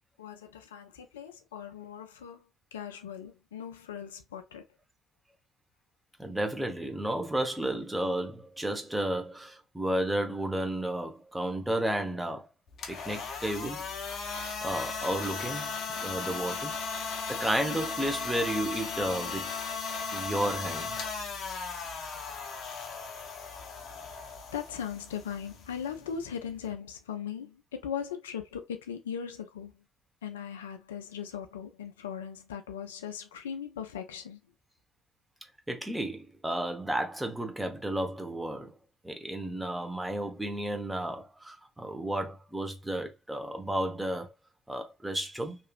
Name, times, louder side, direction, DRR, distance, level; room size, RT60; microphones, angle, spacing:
voice 1, 0.2-4.6 24.5-29.8 30.2-34.4, left 8 dB, 85° left, 0.4 m, -39 dB
voice 2, 6.2-12.5 12.9-13.9 14.6-16.7 17.3-19.5 20.1-20.9 35.7-38.7 39.0-44.3 44.7-45.6, right 1 dB, 10° right, 0.9 m, -32 dB
sound 1, 12.7-26.7, left 5 dB, 55° left, 0.7 m, -37 dB
2.9 x 2.4 x 2.3 m
hypercardioid pair, 50°, 0 cm